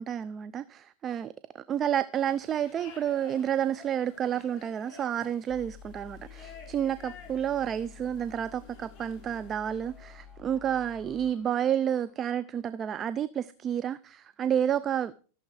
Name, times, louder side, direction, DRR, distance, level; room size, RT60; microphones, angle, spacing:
voice 1, 0.0-15.1, right 9 dB, 30° right, 0.5 m, -30 dB
sound 1, 2.1-10.2, left 5 dB, 45° left, 6.7 m, -52 dB
sound 2, 5.5-12.4, left 7 dB, 15° left, 2.1 m, -51 dB
14.5 x 7.1 x 4.9 m
hypercardioid pair, 105°, 0 cm